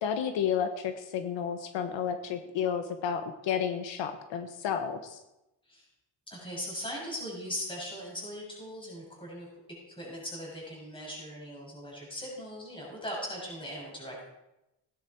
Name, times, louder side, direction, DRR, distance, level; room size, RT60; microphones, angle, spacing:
voice 1, 0.0-5.2, left 8 dB, 80° left, 7 dB, 1.3 m, -31 dB
voice 2, 6.3-9.5 10.0-14.3, equal, 10° left, -4 dB, 6.3 m, -39 dB
17.0 x 9.9 x 4.7 m, 0.92 s
cardioid pair, 135°, 45 cm